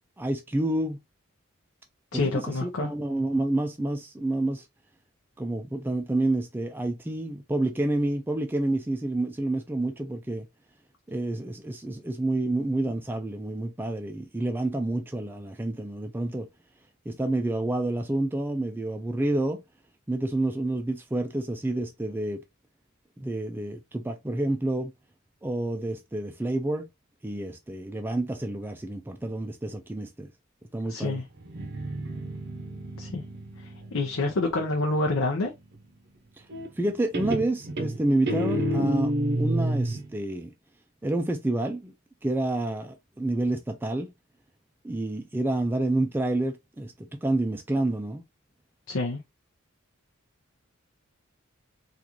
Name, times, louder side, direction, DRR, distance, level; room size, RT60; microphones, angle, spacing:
voice 1, 0.2-1.0 2.1-4.7 5.4-10.5 11.1-16.5 17.1-19.6 20.1-22.4 23.2-24.9 25.4-26.9 27.2-30.3 30.7-31.2 36.4-36.5 36.8-40.5 41.0-41.9 42.2-44.1 44.8-48.2, right 2 dB, 10° right, 0.3 m, -29 dB
voice 2, 2.1-2.9 30.9-31.2 33.0-33.2 33.6-35.5 48.9-49.2, left 2 dB, 80° left, 0.7 m, -27 dB
Guitar, 31.4-35.0 36.5-36.9 37.1-40.1, right 1 dB, 55° right, 0.7 m, -30 dB
3.6 x 2.4 x 2.9 m
head